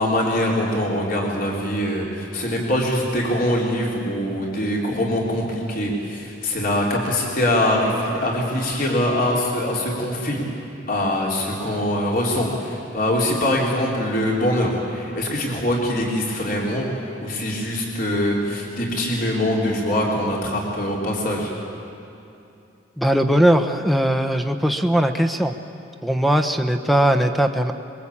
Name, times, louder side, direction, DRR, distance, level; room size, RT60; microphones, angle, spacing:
voice 1, 0.0-10.4 10.9-16.9 17.2-21.5, left 1 dB, 45° left, -2 dB, 3.9 m, -23 dB
voice 2, 23.0-25.6 26.0-27.7, right 1 dB, ahead, 6 dB, 1.0 m, -19 dB
25.5 x 22.5 x 8.7 m, 2.7 s
head